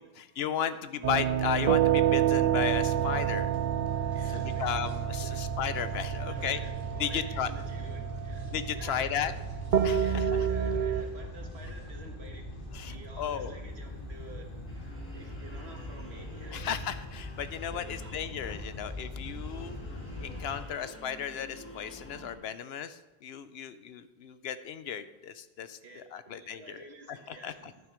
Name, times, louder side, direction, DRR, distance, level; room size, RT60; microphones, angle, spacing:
voice 1, 0.2-3.5 4.3-6.6 7.0-7.5 8.5-9.3 9.8-10.5 12.7-13.6 16.5-19.8 20.2-27.7, left 9 dB, 75° left, 13 dB, 0.8 m, -35 dB
sound 1, 1.0-11.0, right 9 dB, 55° right, 0.7 m, -29 dB
sound 2, 2.6-20.6, left 1 dB, 55° left, 2.0 m, -42 dB
voice 2, 4.1-4.7 5.2-5.6 6.2-8.5 8.7-9.3 10.0-12.5 12.9-14.5 15.1-16.7 17.7-18.1 25.8-27.7, right 2 dB, 75° right, 2 dB, 1.7 m, -50 dB
sound 3, 13.7-22.3, left 1 dB, 10° left, 1.5 m, -50 dB
11.5 x 6.8 x 5.1 m, 1.1 s
omnidirectional pair, 1.1 m